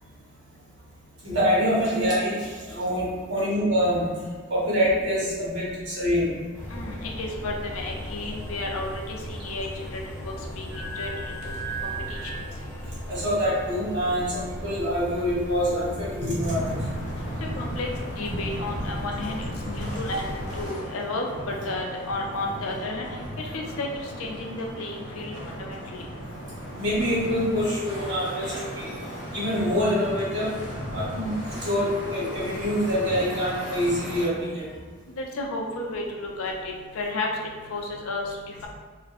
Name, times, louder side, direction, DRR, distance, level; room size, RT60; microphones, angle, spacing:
voice 1, 1.2-4.0 4.5-6.3 13.1-16.8 26.7-28.9 29.3-30.5 30.9-31.3 31.6-34.6, equal, 55° right, -8 dB, 1.2 m, -25 dB
sound 1, 6.5-20.7, equal, 10° left, 0.5 m, -37 dB
voice 2, 6.7-9.8 10.6-10.7 11.0-11.1 11.8-12.3 17.6-17.9 18.2-21.2 21.7-23.1 23.5-23.9 24.2-25.3 25.7-25.8 35.2-36.5 37.0-37.3 37.7-38.2, left 2 dB, 90° left, 1 dB, 0.4 m, -32 dB
sound 2, 7.9-12.9, right 4 dB, 70° right, 0.7 m, -40 dB
sound 3, 16.4-34.3, equal, 60° left, 0.7 m, -36 dB
2.5 x 2.3 x 2.5 m, 1.5 s
head